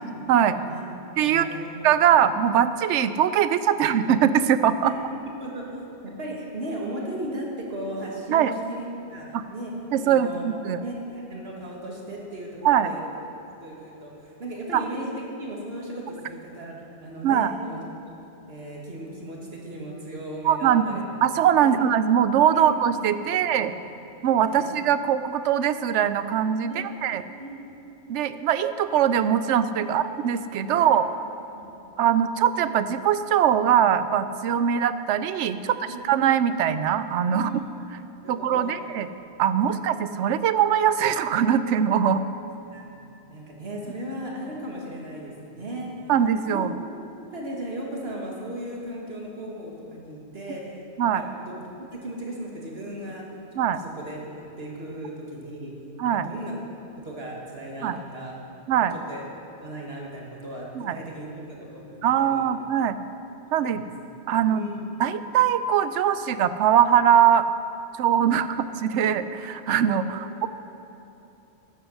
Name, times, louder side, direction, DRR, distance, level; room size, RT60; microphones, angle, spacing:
voice 1, 0.3-0.6 1.2-1.5 1.8-4.9 8.3-8.5 9.3-9.4 9.9-10.8 12.6-12.9 14.7-14.8 17.2-17.5 20.4-23.8 24.2-27.2 28.1-31.1 32.0-37.5 38.3-39.1 39.4-42.2 46.1-46.7 51.0-51.2 53.6-53.8 56.0-56.3 57.8-58.0 58.7-58.9 60.7-61.0 62.0-63.0 63.5-63.8 64.3-64.6 65.0-67.5 68.0-68.5 68.8-70.5, right 9 dB, 80° right, 12 dB, 0.9 m, -22 dB
voice 2, 1.2-1.7 5.4-10.4 10.8-13.0 13.6-16.7 17.0-17.8 18.5-21.0 21.6-21.8 22.5-22.7 23.3-23.4 23.7-23.8 24.4-24.7 26.6-26.9 27.4-27.7 29.8-30.0 30.7-31.0 31.5-31.7 35.5-36.1 37.3-37.7 38.2-38.8 39.5-39.7 42.7-42.8 43.3-45.9 46.5-46.7 47.3-51.6 51.9-53.2 53.9-54.2 54.6-55.7 56.2-56.6 57.0-58.3 58.9-59.2 59.6-62.5 63.6-63.9 64.5-64.8 68.2-68.5 69.0-69.1 70.1-70.2, right 1 dB, 55° right, -2 dB, 2.2 m, -36 dB
13.5 x 8.0 x 6.3 m, 2.9 s
omnidirectional pair, 1.2 m